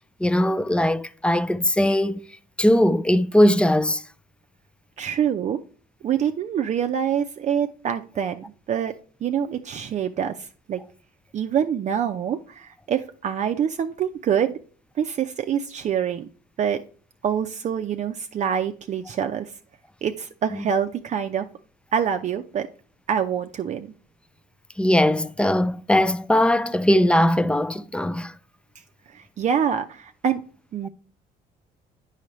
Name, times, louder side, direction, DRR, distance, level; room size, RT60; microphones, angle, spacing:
voice 1, 0.2-2.2 2.6-4.0 20.5-20.7 24.8-28.3, left 1 dB, 5° left, 0.3 m, -20 dB
voice 2, 5.0-5.6 6.0-8.9 9.2-10.8 11.3-14.6 15.0-16.3 16.6-16.8 17.2-19.5 20.0-21.5 21.9-22.7 23.1-23.9 29.1-30.4 30.7-30.9, right 8 dB, 45° right, 0.5 m, -25 dB
8.5 x 5.6 x 3.1 m
cardioid pair, 110°, 17 cm